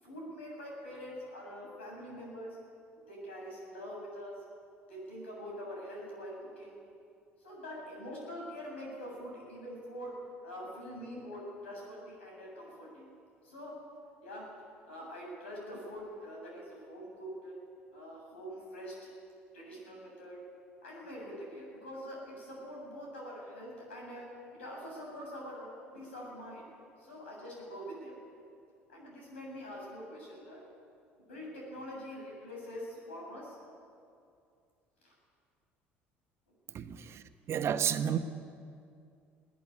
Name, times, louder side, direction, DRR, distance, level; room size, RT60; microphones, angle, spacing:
voice 1, 0.0-2.6 3.1-4.4 4.9-6.8 7.4-13.1 13.4-13.9 14.2-14.5 14.8-17.6 17.9-19.1 19.5-20.4 20.8-24.3 24.5-25.7 25.9-26.7 27.0-28.2 28.9-30.6 31.2-33.6 35.0-35.1, equal, 80° left, -2 dB, 7.9 m, -44 dB
voice 2, 36.7-38.2, right 9 dB, 45° right, 10 dB, 1.2 m, -32 dB
21.5 x 18.0 x 10.0 m, 2.4 s
figure-of-eight pair, 60°, 6 cm